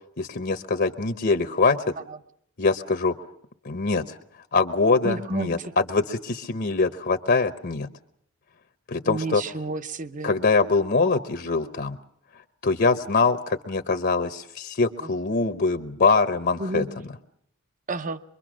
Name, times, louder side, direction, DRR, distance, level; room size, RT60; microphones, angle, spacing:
voice 1, 0.2-1.8 2.6-3.2 3.6-4.2 4.5-7.9 8.9-9.4 10.2-12.0 12.6-16.9, left 4 dB, 50° left, 9 dB, 0.9 m, -23 dB
voice 2, 5.0-5.7 9.0-10.3 15.0-15.1 16.6-16.9 17.9-18.2, right 2 dB, 40° right, 12 dB, 0.9 m, -31 dB
23.5 x 23.5 x 6.3 m, 0.71 s
head